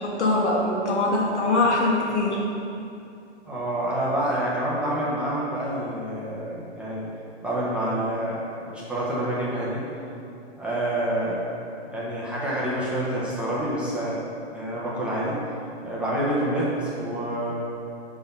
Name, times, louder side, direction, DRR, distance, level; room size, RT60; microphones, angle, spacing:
voice 1, 0.0-2.4, left 2 dB, 85° left, -2 dB, 1.5 m, -22 dB
voice 2, 3.5-7.0 7.4-9.8 10.6-11.4 11.9-14.2 14.5-15.4 15.8-17.5, right 1 dB, 5° right, -8 dB, 0.6 m, -27 dB
5.7 x 4.0 x 5.2 m, 2.7 s
hypercardioid pair, 145°, 33 cm